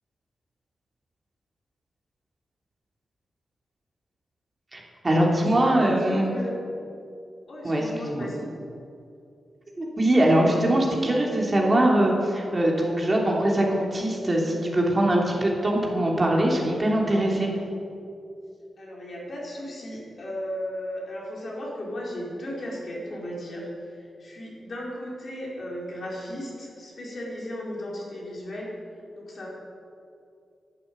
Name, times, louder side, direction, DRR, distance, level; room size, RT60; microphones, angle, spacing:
voice 1, 4.7-6.3 7.6-8.3 9.8-17.5, right 1 dB, 25° right, -2 dB, 3.1 m, -22 dB
voice 2, 5.3-6.6 7.5-8.5 18.8-28.7 29.1-29.5, left 1 dB, 50° left, -4 dB, 4.6 m, -35 dB
11.5 x 11.5 x 9.4 m, 2.5 s
wide cardioid pair, 110°, 0 cm